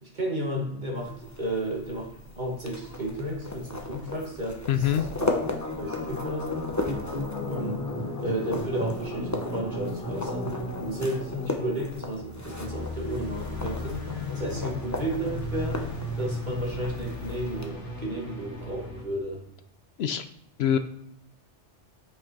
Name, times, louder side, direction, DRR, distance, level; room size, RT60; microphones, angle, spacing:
voice 1, 0.0-5.4 5.8-6.6 7.5-7.8 8.2-15.8 16.2-19.4, right 1 dB, 40° right, -2 dB, 2.3 m, -33 dB
sound 1, 0.9-17.7, left 2 dB, 15° left, 1.0 m, -37 dB
voice 2, 4.7-5.0 20.0-20.2 20.6-20.8, left 9 dB, 70° left, 10 dB, 0.8 m, -24 dB
sound 2, 5.3-19.0, left 1 dB, 85° left, 2.3 m, -35 dB
8.7 x 6.3 x 4.7 m, 0.73 s
omnidirectional pair, 1.2 m